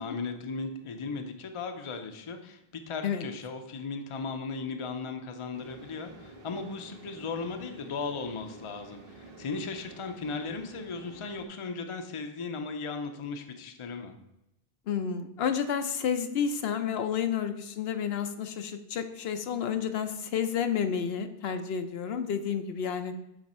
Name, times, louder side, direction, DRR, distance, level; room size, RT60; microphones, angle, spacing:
voice 1, 0.0-14.2, left 4 dB, 35° left, 6 dB, 0.6 m, -37 dB
sound 1, 5.5-11.5, right 2 dB, 65° right, 1.3 m, -50 dB
voice 2, 14.9-23.1, left 7 dB, 80° left, 8 dB, 0.9 m, -30 dB
9.9 x 3.4 x 4.3 m, 0.87 s
omnidirectional pair, 1.0 m